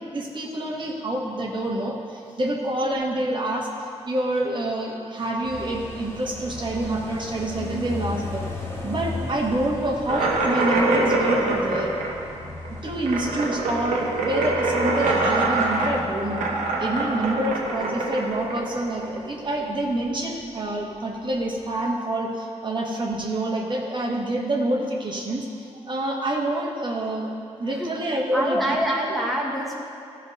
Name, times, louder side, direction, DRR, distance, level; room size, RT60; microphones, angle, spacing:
voice 1, 0.1-8.4 8.8-11.9 12.8-16.5 16.8-25.5 25.8-27.3 27.6-28.8, right 1 dB, 40° right, -1 dB, 1.5 m, -27 dB
sound 1, 5.4-20.5 20.8-20.9 21.2-21.8, left 2 dB, 20° left, 2.4 m, -37 dB
sound 2, 10.1-19.5, right 2 dB, 90° right, 1.1 m, -25 dB
voice 2, 27.6-27.9 28.3-29.8, equal, ahead, -2 dB, 1.3 m, -26 dB
13.0 x 5.0 x 5.3 m, 2.5 s
cardioid pair, 65°, 12 cm